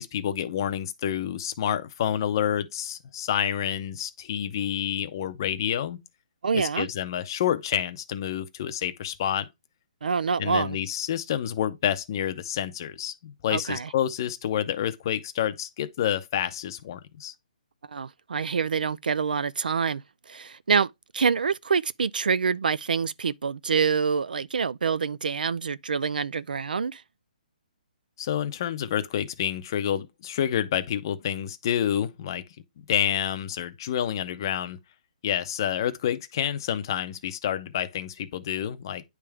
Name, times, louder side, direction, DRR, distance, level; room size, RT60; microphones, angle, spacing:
voice 1, 0.0-6.0 6.5-9.5 10.4-17.3 28.2-32.4 32.9-34.8 35.2-39.0, left 10 dB, 30° left, 0.6 m, -28 dB
voice 2, 6.4-6.9 10.0-10.8 13.5-13.9 17.9-27.0, right 5 dB, 85° right, 0.4 m, -26 dB
9.7 x 3.5 x 3.3 m
hypercardioid pair, 170°, 5 cm